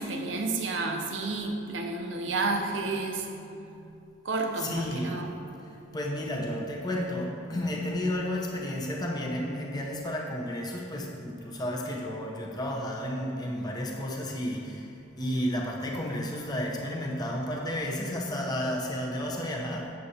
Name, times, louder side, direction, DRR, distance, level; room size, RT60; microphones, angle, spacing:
voice 1, 0.0-3.3 3.6-5.4, right 3 dB, 70° right, 3 dB, 0.7 m, -31 dB
voice 2, 4.6-5.2 5.9-14.9 15.2-19.9, left 1 dB, 20° left, -2 dB, 0.7 m, -32 dB
7.7 x 7.6 x 2.8 m, 2.6 s
head